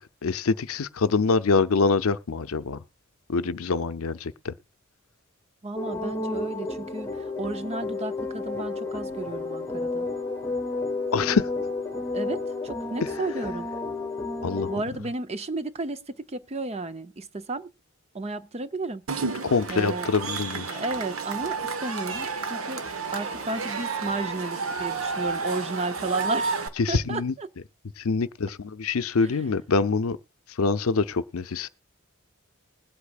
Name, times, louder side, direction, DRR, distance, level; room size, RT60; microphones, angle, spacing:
voice 1, 0.2-2.8 3.3-4.5 11.1-11.4 14.4-14.7 19.5-20.7 26.8-27.3 28.0-30.2 30.6-31.7, left 4 dB, 80° left, 0.6 m, -25 dB
voice 2, 5.6-10.1 12.1-13.7 14.7-17.7 18.1-19.0 19.7-20.1 20.7-22.8 23.1-26.6 26.9-27.5 29.2-29.3, right 2 dB, 30° right, 0.7 m, -33 dB
sound 1, 5.8-14.8, left 3 dB, 15° left, 1.1 m, -31 dB
Cheering / Crowd, 19.1-26.7, right 4 dB, 75° right, 1.2 m, -31 dB
20.5 x 8.3 x 2.4 m
head